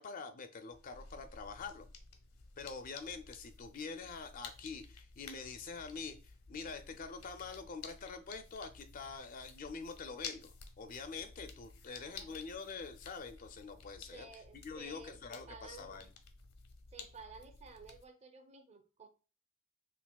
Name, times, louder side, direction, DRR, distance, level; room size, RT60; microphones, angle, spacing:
voice 1, 0.0-1.9 2.6-14.3 14.5-16.1, left 4 dB, 40° left, 0.4 m, -45 dB
sound 1, 0.7-18.1, left 5 dB, 80° left, 0.7 m, -53 dB
voice 2, 12.0-12.4 14.1-16.0 16.9-19.1, right 4 dB, 30° right, 0.6 m, -54 dB
5.8 x 2.4 x 2.2 m
head